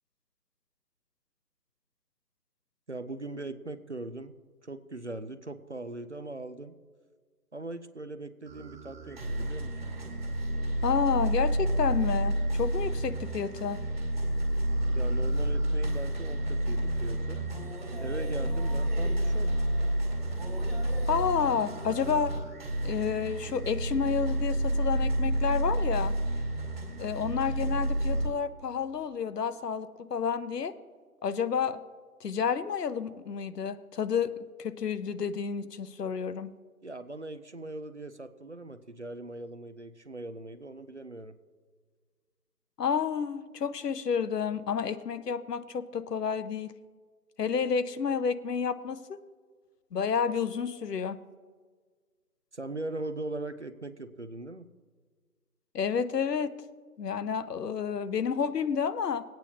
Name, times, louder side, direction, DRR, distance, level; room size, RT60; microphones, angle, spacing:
voice 1, 2.9-4.3 4.6-6.8 7.5-9.8 14.9-17.5 18.0-19.5 36.8-41.4 52.5-54.7, right 2 dB, 50° right, 10 dB, 0.4 m, -40 dB
sound 1, 8.5-28.3, right 1 dB, 30° right, 1.9 m, -30 dB
voice 2, 10.8-13.8 21.1-22.3 22.8-26.1 27.0-30.7 31.2-31.8 32.2-34.3 34.6-36.5 42.8-46.7 47.4-49.0 49.9-51.2 55.7-56.5 57.0-59.2, left 6 dB, 85° left, 13 dB, 0.8 m, -30 dB
20.5 x 8.9 x 2.8 m, 1.5 s
hypercardioid pair, 180°, 47 cm